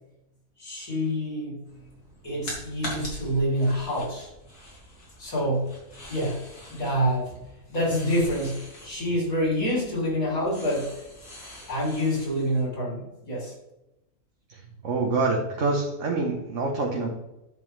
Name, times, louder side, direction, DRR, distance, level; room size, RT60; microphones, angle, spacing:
voice 1, 0.6-1.6 2.2-4.3 5.2-5.8 6.1-6.4 6.7-7.4 7.7-10.9 11.7-13.5, equal, 65° left, -4 dB, 3.9 m, -27 dB
sound 1, 1.6-12.6, left 1 dB, 90° left, 3.2 m, -43 dB
voice 2, 14.8-17.1, right 3 dB, 55° right, 0 dB, 1.4 m, -26 dB
10.5 x 7.3 x 3.4 m, 0.92 s
omnidirectional pair, 1.6 m